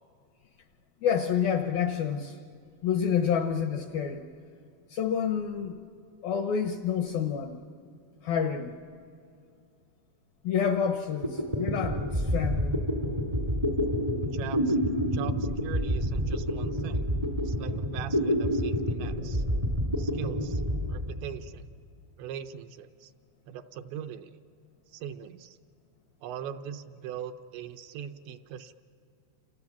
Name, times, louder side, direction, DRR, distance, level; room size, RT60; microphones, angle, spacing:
voice 1, 1.0-2.4 2.8-4.2 4.9-5.8 6.2-7.6 8.2-8.8 10.4-12.8, left 7 dB, 75° left, 6 dB, 2.2 m, -28 dB
sound 1, 10.9-11.0 11.2-21.7, equal, 30° right, 0.6 m, -28 dB
voice 2, 14.3-17.1 17.4-19.4 20.0-20.6 20.9-21.7 22.2-23.1 23.5-24.3 24.9-25.6 26.2-28.7, right 9 dB, 80° right, 8 dB, 2.9 m, -41 dB
29.0 x 28.0 x 7.2 m, 2.3 s
omnidirectional pair, 5.3 m